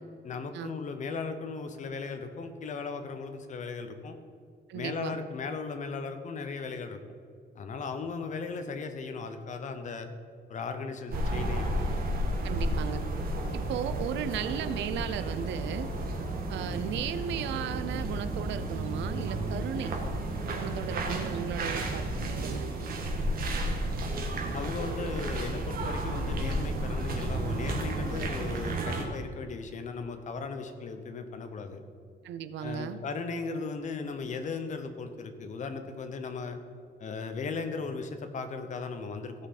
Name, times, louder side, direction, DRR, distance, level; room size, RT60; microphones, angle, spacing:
voice 1, 0.2-4.2 4.7-7.0 7.5-10.1 10.5-11.7 24.5-31.8 32.6-36.6 37.0-39.3, left 4 dB, 45° left, 7 dB, 0.9 m, -37 dB
voice 2, 4.7-5.2 12.4-13.0 13.5-15.9 16.5-20.0 20.5-22.7 32.2-33.0, right 9 dB, 85° right, 12 dB, 0.6 m, -35 dB
sound 1, 11.1-29.1, right 1 dB, 55° right, 1.5 m, -32 dB
16.0 x 5.7 x 4.2 m, 2.3 s
cardioid pair, 150°, 18 cm